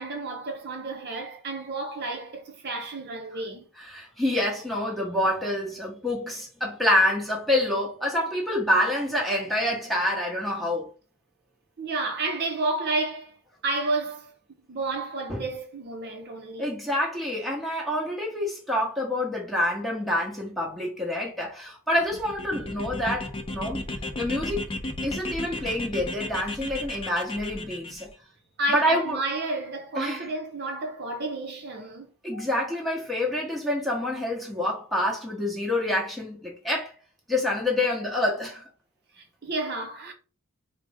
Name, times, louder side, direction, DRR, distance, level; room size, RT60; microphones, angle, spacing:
voice 1, 0.0-3.7 11.8-13.4 13.6-14.3 14.7-16.8 28.6-32.1 32.3-32.4 39.2-40.1, right 2 dB, 45° right, 0.6 m, -31 dB
voice 2, 3.8-10.9 15.3-15.5 16.6-23.9 24.2-24.6 25.0-28.1 28.7-29.2 30.0-30.3 32.2-36.9 37.3-38.6, left 1 dB, ahead, 0.8 m, -27 dB
sound 1, 22.0-28.1, left 2 dB, 25° left, 0.5 m, -34 dB
4.3 x 2.0 x 3.3 m
head